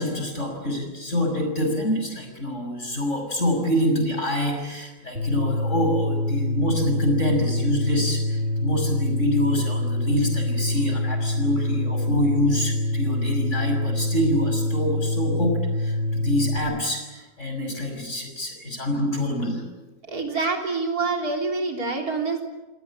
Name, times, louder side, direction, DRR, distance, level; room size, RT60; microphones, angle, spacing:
voice 1, 0.0-19.6, left 1 dB, 50° left, 4 dB, 6.7 m, -26 dB
sound 1, 5.2-16.6, left 1 dB, 50° right, 3.8 m, -25 dB
voice 2, 20.1-22.4, right 3 dB, 70° right, 2 dB, 4.2 m, -26 dB
29.0 x 20.0 x 8.6 m, 1.1 s
omnidirectional pair, 1.6 m